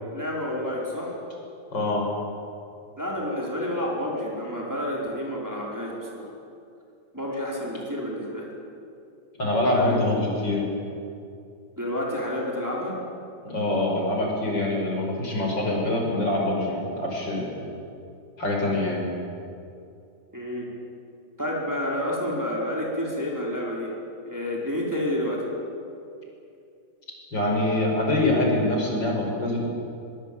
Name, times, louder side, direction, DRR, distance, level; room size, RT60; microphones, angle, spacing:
voice 1, 0.1-1.2 3.0-6.3 7.1-8.5 9.7-10.0 11.8-13.0 20.3-20.7 21.4-23.9 24.3-25.4, left 1 dB, 10° right, -3 dB, 4.7 m, -29 dB
voice 2, 1.7-2.1 9.4-10.6 13.4-17.5 18.4-19.1 27.3-29.7, left 1 dB, 80° left, -1 dB, 6.2 m, -24 dB
22.5 x 22.5 x 8.7 m, 2.6 s
omnidirectional pair, 1.9 m